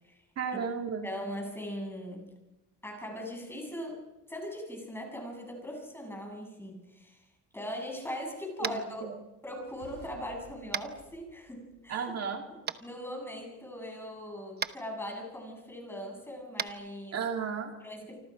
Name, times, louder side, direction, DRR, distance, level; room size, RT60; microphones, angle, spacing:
voice 1, 0.4-1.1 8.6-9.2 11.9-12.4 17.1-17.7, right 6 dB, 50° right, 3 dB, 2.3 m, -34 dB
voice 2, 1.0-2.3 2.8-4.0 4.3-7.2 7.5-9.0 9.4-12.1 12.5-17.2 17.8-18.2, equal, 5° left, 1 dB, 7.8 m, -40 dB
Tap, 8.6-8.9 10.7-10.9 12.7-12.8 14.6-14.7 16.5-16.7, right 7 dB, 30° right, 0.9 m, -33 dB
sound 1, 9.5-12.2, left 3 dB, 90° left, 6.2 m, -55 dB
28.5 x 25.5 x 5.2 m, 1.0 s
cardioid pair, 130°, 32 cm